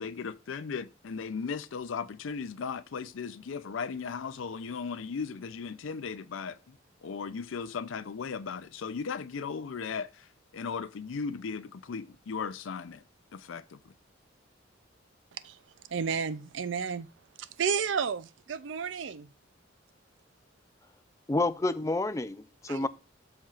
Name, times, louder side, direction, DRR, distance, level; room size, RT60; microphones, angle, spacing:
voice 1, 0.0-6.8 7.0-10.3 10.5-13.0 13.3-13.8, left 5 dB, 80° left, 0.4 m, -37 dB
voice 2, 15.9-17.1 17.4-19.3 22.7-22.9, right 6 dB, 70° right, 0.5 m, -32 dB
voice 3, 21.3-22.9, left 2 dB, 15° left, 0.4 m, -29 dB
13.0 x 4.4 x 2.4 m
head